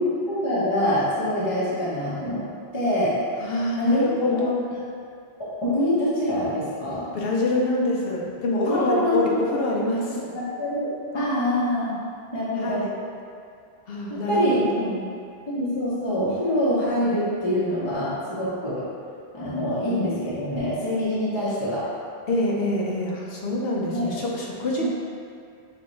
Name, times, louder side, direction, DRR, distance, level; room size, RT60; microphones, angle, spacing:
voice 1, 0.0-2.5 2.7-3.2 3.8-4.5 5.4-7.1 8.7-9.4 9.6-9.7 10.1-10.9 11.1-11.9 12.3-12.8 14.1-14.9 15.5-18.8 19.3-21.8 23.9-24.1, left 1 dB, 30° left, -9 dB, 0.8 m, -25 dB
voice 2, 3.4-4.7 7.1-10.2 12.6-13.0 13.9-15.0 22.3-24.8, left 2 dB, 65° left, -2 dB, 0.9 m, -25 dB
4.3 x 3.3 x 3.1 m, 2.3 s
omnidirectional pair, 1.1 m